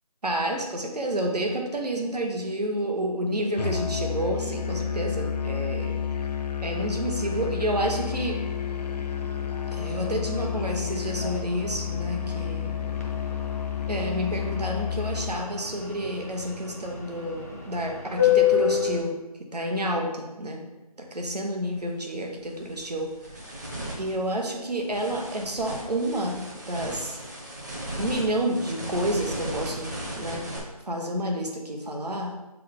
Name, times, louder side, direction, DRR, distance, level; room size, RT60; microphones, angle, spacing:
voice 1, 0.2-6.0 6.6-8.4 9.7-12.7 13.9-19.1 19.5-20.6 21.0-23.1 24.0-27.2 27.9-29.9 30.1-30.5 30.9-32.4, right 1 dB, 80° right, 1 dB, 1.4 m, -29 dB
Musical instrument, 3.6-15.4, left 8 dB, 90° left, 0.5 m, -30 dB
sound 1, 7.7-19.0, left 9 dB, 20° left, 0.5 m, -31 dB
sound 2, 21.7-21.9 22.4-30.6, right 1 dB, 30° right, 1.1 m, -37 dB
7.1 x 3.8 x 3.9 m, 1.1 s
figure-of-eight pair, 175°, 20 cm